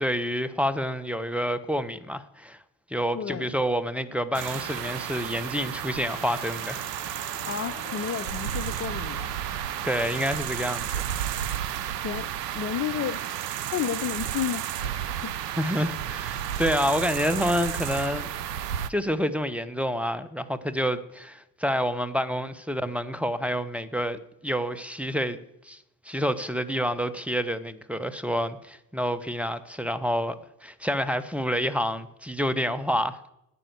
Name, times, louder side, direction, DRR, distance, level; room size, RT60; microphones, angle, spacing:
voice 1, 0.0-2.6 2.9-7.1 9.8-11.1 15.6-18.3 18.9-25.4 25.6-30.4 30.6-33.3, equal, 5° right, 1.0 m, -28 dB
voice 2, 3.1-3.5 7.5-9.4 12.0-12.3 12.5-13.2 13.7-15.3, left 9 dB, 30° left, 0.7 m, -32 dB
sound 1, 4.3-11.4, left 5 dB, 80° left, 1.3 m, -47 dB
sound 2, 4.3-18.9, right 10 dB, 80° right, 0.6 m, -32 dB
12.5 x 9.0 x 8.4 m
figure-of-eight pair, 45°, 48 cm